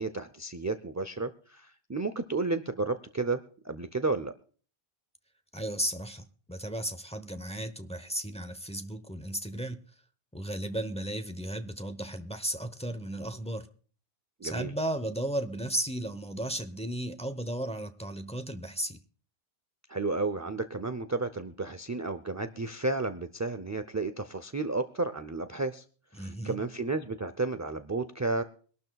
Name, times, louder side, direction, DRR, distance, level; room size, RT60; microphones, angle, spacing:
voice 1, 0.0-4.3 14.4-14.7 19.9-25.8 26.1-28.4, right 3 dB, 25° right, 10 dB, 0.4 m, -32 dB
voice 2, 5.5-9.8 10.3-13.7 14.4-19.0 26.1-26.6, right 1 dB, 5° left, 9 dB, 0.8 m, -35 dB
24.0 x 12.0 x 2.3 m, 0.43 s
omnidirectional pair, 1.1 m